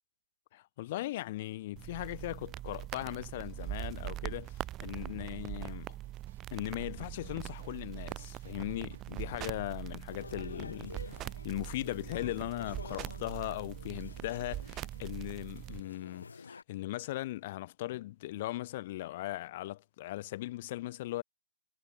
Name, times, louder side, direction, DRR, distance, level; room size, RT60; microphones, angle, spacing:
voice 1, 0.5-6.0 6.5-21.2, left 16 dB, 40° left, 0.5 m, -39 dB
sound 1, 1.8-15.8, right 14 dB, 20° right, 0.8 m, -42 dB
sound 2, 2.2-10.2 11.0-11.8, right 8 dB, 50° right, 2.3 m, -63 dB
sound 3, 10.1-16.6, left 4 dB, 70° left, 3.1 m, -50 dB
figure-of-eight pair, 125°, 0 cm